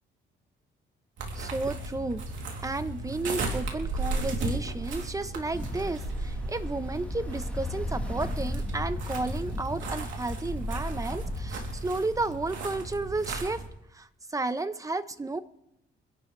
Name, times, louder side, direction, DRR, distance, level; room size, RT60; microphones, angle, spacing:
sound 1, 1.2-13.7, right 2 dB, 75° right, 3.1 m, -35 dB
voice 1, 1.3-2.2 2.6-13.6 13.9-15.4, right 2 dB, 15° right, 12 dB, 1.0 m, -32 dB
Ocean, 5.5-11.8, left 1 dB, 5° left, 1.4 m, -36 dB
25.5 x 11.5 x 3.4 m, 0.85 s
cardioid pair, 90°, 20 cm